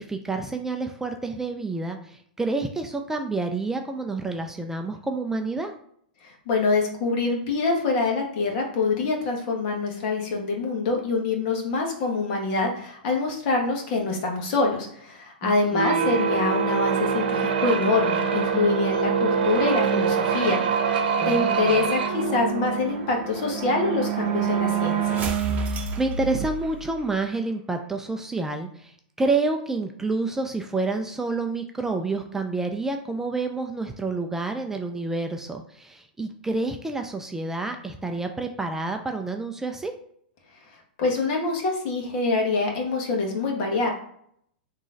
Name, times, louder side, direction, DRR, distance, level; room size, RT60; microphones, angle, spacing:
voice 1, 0.0-5.7 15.4-16.2 21.2-21.8 25.6-39.9, right 3 dB, 10° right, 4 dB, 0.4 m, -29 dB
voice 2, 6.2-20.6 20.9-21.0 21.3-25.2 41.0-43.9, left 3 dB, 50° left, 1 dB, 1.5 m, -25 dB
sound 1, 15.7-26.0, right 7 dB, 70° right, 0.8 m, -25 dB
sound 2, 20.4-27.1, right 3 dB, 30° right, 0.8 m, -34 dB
3.7 x 3.1 x 3.8 m, 0.67 s
hypercardioid pair, 120°, 5 cm